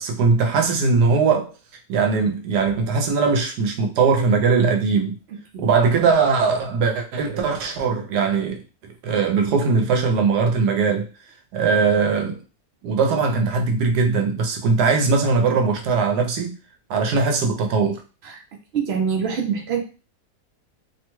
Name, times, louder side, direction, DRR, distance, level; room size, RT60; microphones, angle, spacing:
voice 1, 0.0-1.5 1.9-5.2 5.6-8.6 9.0-11.1 11.5-12.4 12.8-16.5 16.9-18.0, right 4 dB, 90° right, 1.2 m, -20 dB
voice 2, 18.7-19.8, right 6 dB, 65° right, 0.6 m, -24 dB
2.9 x 2.2 x 3.0 m
omnidirectional pair, 1.7 m